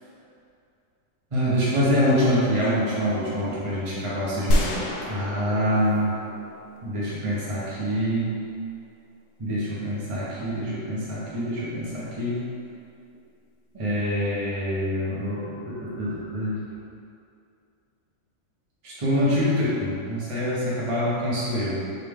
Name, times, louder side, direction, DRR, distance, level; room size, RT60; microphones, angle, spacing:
voice 1, 1.3-4.8 5.1-6.1 6.8-8.4 9.4-12.5 13.7-16.5 18.8-21.8, equal, 30° right, -8 dB, 0.7 m, -25 dB
sound 1, 4.5-7.4, left 1 dB, 85° left, 1.1 m, -28 dB
3.8 x 3.6 x 3.5 m, 2.5 s
omnidirectional pair, 1.5 m